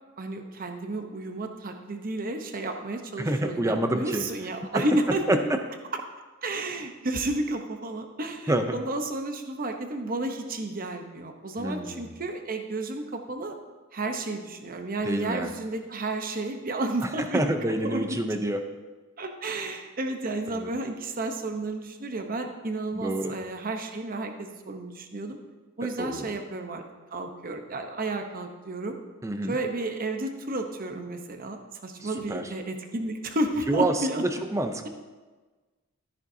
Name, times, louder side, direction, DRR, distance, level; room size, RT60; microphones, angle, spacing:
voice 1, 0.2-5.2 6.4-13.5 13.9-17.4 17.8-18.5 19.2-25.4 25.8-26.8 27.1-29.0 29.5-34.2, right 2 dB, 40° right, 5 dB, 0.9 m, -32 dB
voice 2, 3.2-4.2 4.7-4.9 5.3-5.6 8.5-8.8 11.6-12.1 15.0-15.5 17.0-18.6 20.5-20.7 22.9-23.3 25.8-26.3 29.2-29.6 32.0-32.5 33.7-34.9, right 1 dB, 15° right, 7 dB, 0.6 m, -28 dB
13.0 x 10.5 x 2.8 m, 1.3 s
head